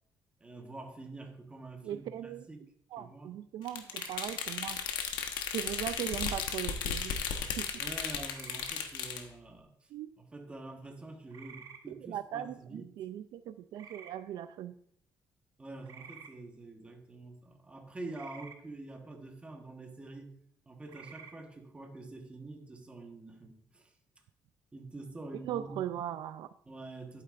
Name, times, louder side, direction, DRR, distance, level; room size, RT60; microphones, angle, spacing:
voice 1, 0.4-2.6 3.0-3.3 7.8-9.9 10.2-12.9 15.6-20.3 20.7-23.9 24.7-25.8 26.7-27.2, right 2 dB, 15° right, 3 dB, 1.2 m, -46 dB
voice 2, 1.8-2.4 2.9-4.8 5.5-7.8 9.9-10.1 11.9-14.8 25.4-26.5, right 11 dB, 70° right, 12 dB, 0.4 m, -39 dB
sound 1, 3.7-9.2, left 7 dB, 90° left, 1.0 m, -35 dB
sound 2, 3.9-4.4 5.9-6.4 8.3-8.8 11.3-11.8 13.7-14.1 15.8-16.3 18.1-18.6 20.9-21.3, right 6 dB, 50° right, 0.9 m, -50 dB
11.0 x 9.0 x 2.5 m, 0.67 s
cardioid pair, 155°, 8 cm